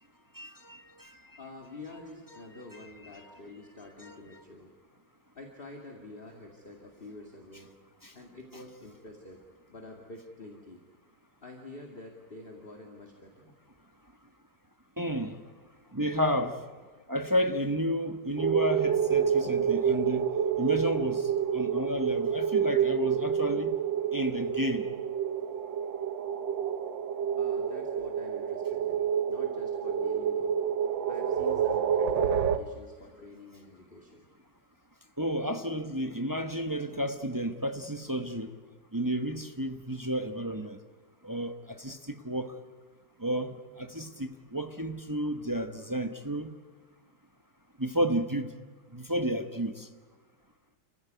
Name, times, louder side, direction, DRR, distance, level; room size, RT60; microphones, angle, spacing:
voice 1, 0.3-1.2 4.0-4.4 8.0-8.1 15.0-15.4 15.9-16.6 17.1-20.3 20.6-23.8 24.1-24.9 35.2-38.5 38.9-40.8 41.2-42.5 43.2-46.5 47.8-48.5 48.9-49.9, equal, 15° right, 0.8 m, -31 dB
voice 2, 1.4-4.7 5.3-7.7 8.1-9.4 9.7-10.8 11.4-13.5 27.3-30.6 31.1-34.3, left 2 dB, 30° left, 2.5 m, -48 dB
sound 1, 18.4-32.6, right 8 dB, 80° right, 1.8 m, -28 dB
29.5 x 15.0 x 9.5 m
omnidirectional pair, 2.0 m